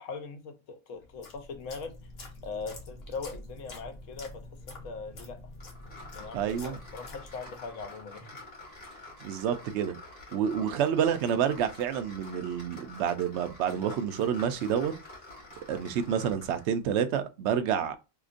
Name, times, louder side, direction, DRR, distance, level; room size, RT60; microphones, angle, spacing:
voice 1, 0.0-2.0 2.4-5.4 6.1-8.4, left 4 dB, 90° left, 1.1 m, -41 dB
sound 1, 1.0-7.7, left 2 dB, 60° left, 1.0 m, -47 dB
sound 2, 5.6-16.7, left 2 dB, 35° left, 1.6 m, -48 dB
voice 2, 6.3-6.8 9.2-10.0 10.3-14.9 15.7-18.0, right 8 dB, 70° right, 0.8 m, -28 dB
3.7 x 2.9 x 2.5 m
omnidirectional pair, 1.3 m